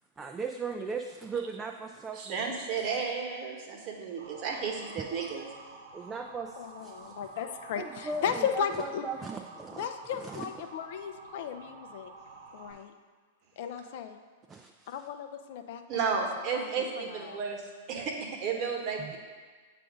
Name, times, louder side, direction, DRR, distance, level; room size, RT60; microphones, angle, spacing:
voice 1, 0.2-2.4 5.0-5.1 5.9-7.1 7.7-9.9 10.2-10.5 14.5-15.0 19.0-19.1, right 4 dB, 15° right, 4 dB, 0.3 m, -38 dB
voice 2, 2.1-5.5 15.9-17.6 17.9-19.2, right 5 dB, 40° right, 1 dB, 1.1 m, -33 dB
Motor vehicle (road) / Siren, 4.2-12.7, right 3 dB, 70° right, 0.8 m, -49 dB
voice 3, 6.6-9.0 9.7-12.1 12.5-12.9 13.6-14.2 14.9-17.4, left 8 dB, 60° left, 7 dB, 0.4 m, -36 dB
7.5 x 2.5 x 5.0 m, 1.5 s
hypercardioid pair, 105°, 0 cm